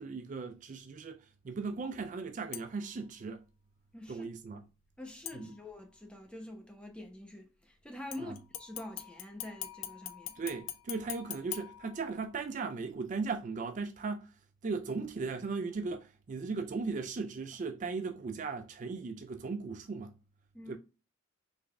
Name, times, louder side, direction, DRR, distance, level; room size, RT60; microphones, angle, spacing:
voice 1, 0.0-3.4 4.1-4.6 5.3-5.5 8.2-8.4 10.4-20.1 20.7-20.8, right 4 dB, 40° right, 0.3 m, -37 dB
sound 1, 2.5-3.0 5.2-6.0 8.1-12.5 12.9-13.0, left 12 dB, 80° left, 0.6 m, -44 dB
voice 2, 3.9-4.6 5.0-10.4 20.5-20.8, left 1 dB, 5° left, 0.8 m, -46 dB
3.9 x 3.4 x 3.4 m
head